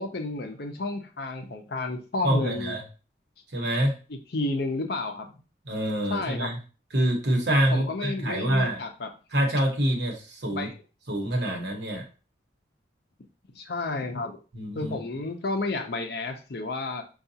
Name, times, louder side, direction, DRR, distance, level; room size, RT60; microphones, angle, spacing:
voice 1, 0.0-2.7 4.3-5.3 6.1-6.5 7.7-9.1 10.5-10.7 13.5-14.4 14.7-17.0, left 2 dB, 55° left, 5 dB, 0.6 m, -31 dB
voice 2, 2.2-2.8 3.5-4.0 5.6-6.6 6.9-8.8 9.3-10.7 11.1-12.1 14.5-14.9, right 1 dB, 65° right, 1 dB, 1.0 m, -26 dB
4.7 x 2.3 x 2.7 m, 0.34 s
head